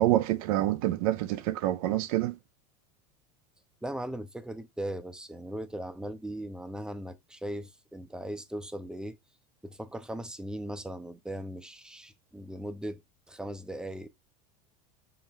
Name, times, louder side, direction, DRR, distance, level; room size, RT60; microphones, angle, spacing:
voice 1, 0.0-2.3, right 14 dB, 70° right, 0.4 m, -27 dB
voice 2, 3.8-9.2 9.6-13.0 13.3-14.1, right 1 dB, 5° right, 0.5 m, -38 dB
5.7 x 2.1 x 3.4 m
supercardioid pair, 110°, 20 cm